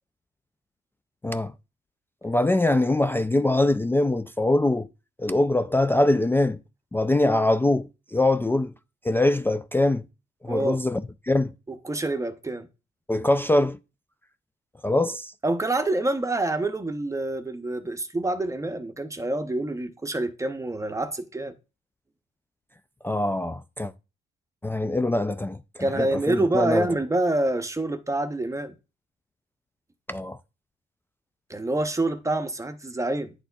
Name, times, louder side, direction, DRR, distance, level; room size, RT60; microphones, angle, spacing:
voice 1, 2.2-4.9 5.2-6.6 6.9-8.7 9.0-10.1 10.4-11.5 13.1-13.8 14.8-15.3 23.0-23.9 24.6-26.9 30.1-30.4, left 2 dB, 10° left, 0.3 m, -23 dB
voice 2, 10.5-10.8 11.8-12.7 15.4-21.5 25.8-28.7 31.5-33.3, right 2 dB, 15° right, 0.8 m, -27 dB
10.0 x 4.1 x 2.3 m
cardioid pair, 90°, 20 cm